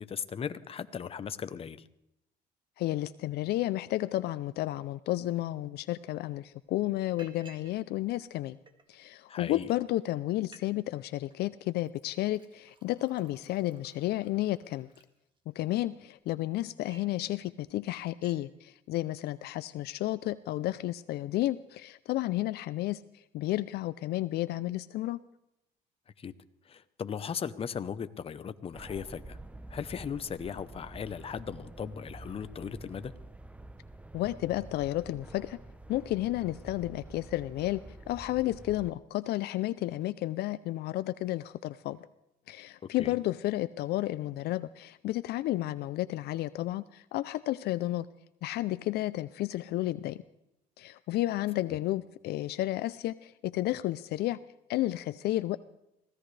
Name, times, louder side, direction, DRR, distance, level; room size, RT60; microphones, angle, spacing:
voice 1, 0.0-1.8 9.3-9.7 26.2-26.3 26.7-29.4 29.7-33.1 43.0-43.1 51.7-51.8, left 7 dB, 35° left, 12 dB, 0.8 m, -37 dB
voice 2, 2.8-8.6 8.9-14.9 15.5-23.0 23.3-25.2 34.1-35.6 35.9-37.8 38.1-42.0 42.5-48.1 48.4-50.2 50.8-54.4 54.7-55.6, left 16 dB, 70° left, 15 dB, 0.5 m, -32 dB
Liquid, 6.7-6.8 7.2-7.8 8.1-9.0 9.6-9.7 10.0-10.1 10.4-10.7 10.9-11.4 11.8-15.7 16.2-17.2 17.6-17.7 18.0-18.5, right 4 dB, 30° right, 1.9 m, -58 dB
sound 1, 28.7-38.9, right 2 dB, 10° right, 0.7 m, -48 dB
24.0 x 16.5 x 3.3 m, 0.82 s
cardioid pair, 110°, 17 cm